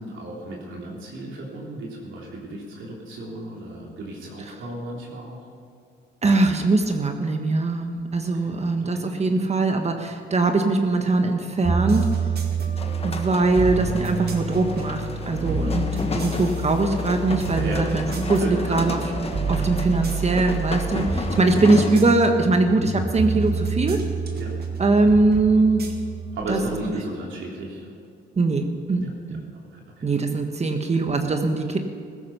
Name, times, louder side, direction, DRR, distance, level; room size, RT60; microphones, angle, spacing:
voice 1, 0.0-5.4 8.4-8.5 8.8-9.0 15.6-16.2 17.5-17.9 18.3-18.8 20.9-21.4 24.4-24.6 26.3-27.9 29.0-30.1, right 1 dB, 75° right, -2 dB, 3.4 m, -34 dB
voice 2, 6.2-12.1 13.0-19.0 19.5-21.0 21.4-24.1 24.8-25.9 26.5-26.6 28.4-29.4 30.0-31.8, right 3 dB, 35° right, 5 dB, 1.4 m, -21 dB
sound 1, 11.6-26.9, right 4 dB, 55° right, 2.1 m, -28 dB
sound 2, 12.8-22.0, left 3 dB, 30° left, 1.5 m, -32 dB
16.0 x 13.5 x 5.7 m, 2.3 s
cardioid pair, 90°, 20 cm